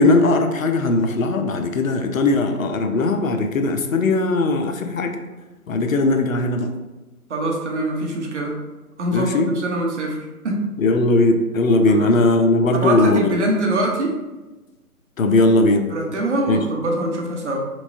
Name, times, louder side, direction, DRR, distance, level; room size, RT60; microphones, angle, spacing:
voice 1, 0.0-5.1 5.7-6.7 9.1-9.5 10.8-13.3 15.2-15.9 16.5-16.6, left 2 dB, 60° left, 5 dB, 0.5 m, -18 dB
voice 2, 7.3-8.6 9.0-10.7 11.9-12.1 12.7-14.2 15.9-17.6, right 1 dB, 50° right, 0 dB, 0.8 m, -23 dB
4.3 x 3.0 x 2.6 m, 1.1 s
hypercardioid pair, 160°, 46 cm